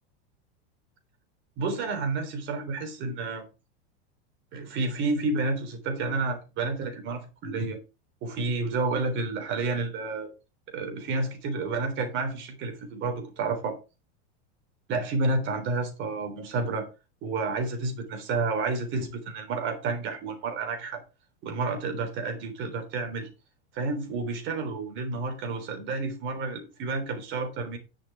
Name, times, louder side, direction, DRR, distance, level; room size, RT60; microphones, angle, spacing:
voice 1, 1.6-3.4 4.5-7.8 8.2-10.3 10.7-13.7 14.9-16.9 17.2-21.0 21.4-23.3 23.7-27.8, right 3 dB, 35° right, 3.6 m, -30 dB
11.0 x 6.4 x 4.9 m
supercardioid pair, 160°, 35 cm